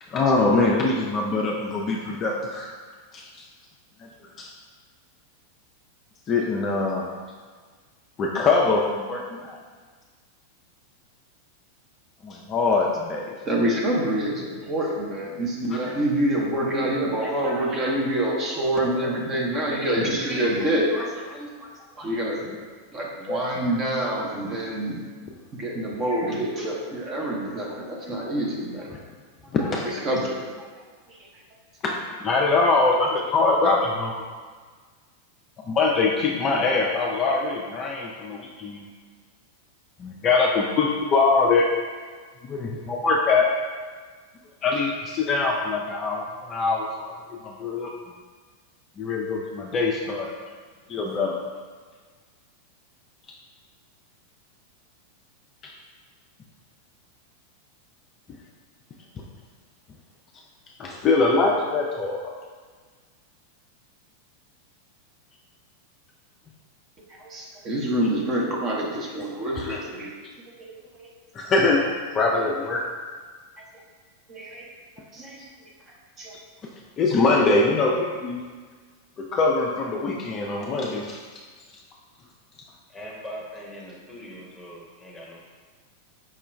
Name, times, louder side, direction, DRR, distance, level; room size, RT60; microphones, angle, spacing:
voice 1, 0.1-2.7 3.1-3.5 4.0-4.1 4.4-4.5 6.3-7.1 8.2-9.6 12.2-13.3 23.3-23.4 29.5-29.8 31.8-34.1 35.7-38.9 40.0-41.7 42.4-43.5 44.6-47.1 47.4-47.9 49.0-50.3 50.9-51.3 55.6-55.7 60.8-62.3 69.6-69.8 71.3-71.9 72.1-72.9 77.0-78.4 79.2-81.2, left 3 dB, 30° left, -1 dB, 0.3 m, -23 dB
voice 2, 13.4-22.5 22.9-25.1 25.5-28.9 29.7-30.7 31.1-31.4 67.1-70.1 70.6-71.1 74.3-74.7 75.1-75.7 76.2-76.3, right 1 dB, 25° right, -2 dB, 0.6 m, -27 dB
voice 3, 82.9-85.4, equal, 10° left, -4 dB, 0.9 m, -40 dB
4.9 x 2.2 x 3.2 m, 1.5 s
figure-of-eight pair, 90°, 0 cm